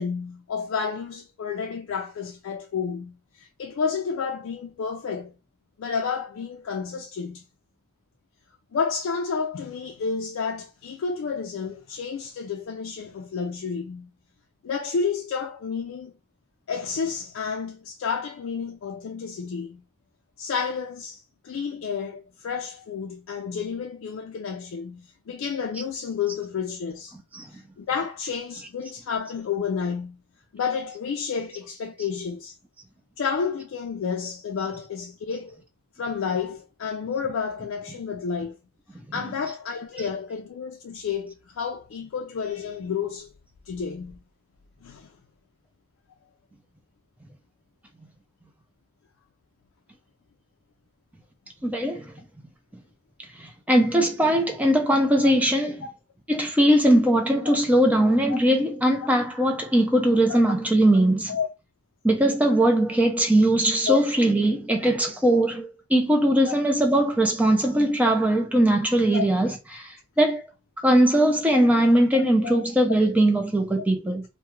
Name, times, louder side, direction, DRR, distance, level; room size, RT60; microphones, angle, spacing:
voice 1, 0.0-5.3 5.8-7.4 8.7-14.1 14.6-16.1 16.7-19.8 20.4-27.1 27.5-30.2 30.5-32.5 33.2-35.6 36.0-38.6 39.1-43.3 43.7-44.2 44.8-45.1 55.8-55.9 57.5-57.6 58.3-58.4 60.3-60.4 61.3-61.5 63.9-64.0 66.5-66.6 69.1-69.3 71.5-71.7 72.1-72.7, left 6 dB, 70° left, 0.3 m, -30 dB
voice 2, 51.6-52.1 53.4-55.8 56.3-61.4 62.0-70.4 70.8-74.2, right 1 dB, 5° right, 0.4 m, -20 dB
2.3 x 2.1 x 2.9 m
head